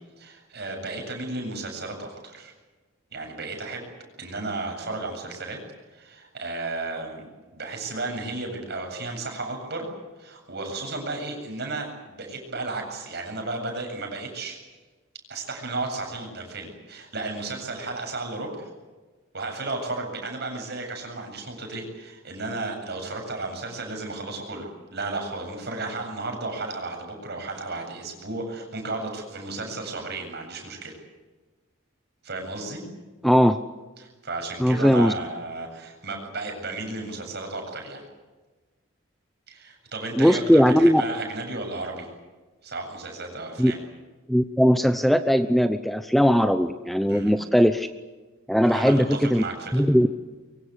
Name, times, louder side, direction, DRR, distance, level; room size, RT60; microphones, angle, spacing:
voice 1, 0.2-2.5 3.1-3.9 4.2-5.6 5.9-9.9 10.2-14.6 15.3-18.7 19.3-31.0 32.2-32.8 34.0-38.0 39.5-42.1 42.6-43.8 47.1-47.3 48.6-49.9, right 2 dB, 50° right, 3 dB, 8.0 m, -33 dB
voice 2, 33.2-33.6 34.6-35.1 40.1-41.0 43.6-43.7 44.3-47.9 48.5-49.4 49.7-50.1, equal, ahead, 9 dB, 0.8 m, -19 dB
24.0 x 24.0 x 8.2 m, 1.3 s
head